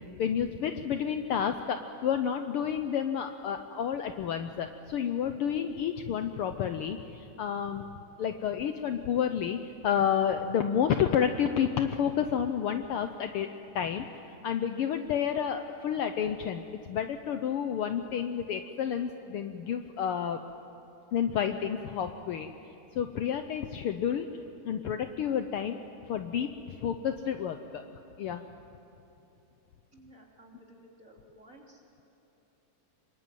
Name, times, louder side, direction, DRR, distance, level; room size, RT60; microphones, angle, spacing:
voice 1, 0.2-7.8 8.2-13.5 13.7-20.4 21.1-22.5 22.9-24.3 24.6-25.8 26.1-27.8 28.2-28.4, left 8 dB, 85° left, 7 dB, 1.2 m, -30 dB
voice 2, 29.9-31.8, right 1 dB, 25° right, -1 dB, 3.5 m, -55 dB
26.5 x 23.0 x 9.3 m, 2.9 s
omnidirectional pair, 3.5 m